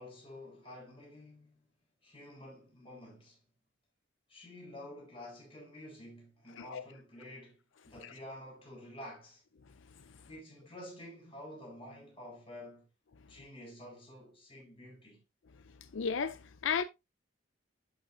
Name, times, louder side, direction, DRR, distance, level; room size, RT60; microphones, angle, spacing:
voice 1, 0.0-1.7 2.0-3.4 4.3-9.4 10.3-12.9 13.3-15.2, left 1 dB, 30° left, 4.6 m, -50 dB
voice 2, 15.9-16.8, left 6 dB, 80° left, 0.5 m, -33 dB
11.5 x 6.1 x 2.6 m
head